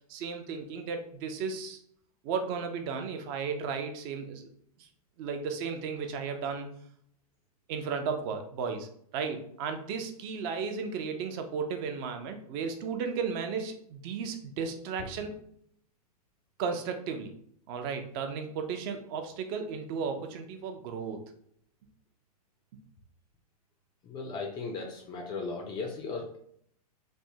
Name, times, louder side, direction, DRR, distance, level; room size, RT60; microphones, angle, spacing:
voice 1, 0.1-1.8 2.2-4.5 4.8-4.9 5.2-6.7 7.7-15.4 16.6-17.3 17.7-21.2, right 5 dB, 40° right, 6 dB, 0.5 m, -34 dB
voice 2, 24.0-26.4, left 4 dB, 20° left, 1 dB, 0.4 m, -37 dB
3.4 x 2.0 x 2.7 m, 0.65 s
hypercardioid pair, 115°, 20 cm